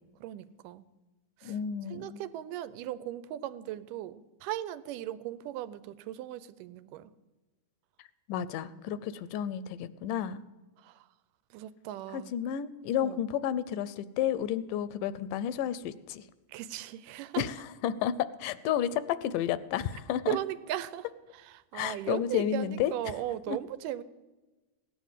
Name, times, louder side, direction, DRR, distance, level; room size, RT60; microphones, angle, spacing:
voice 1, 0.2-0.8 1.4-1.5 1.9-7.1 10.8-11.1 11.5-12.3 13.0-13.2 16.5-17.4 20.3-21.1 21.4-24.0, right 13 dB, 90° right, 15 dB, 2.3 m, -37 dB
voice 2, 1.4-2.2 8.3-10.4 12.1-16.3 17.4-20.4 21.7-23.1 23.5-23.6, left 10 dB, 85° left, 16 dB, 2.2 m, -31 dB
16.5 x 10.0 x 7.3 m, 1.2 s
omnidirectional pair, 3.7 m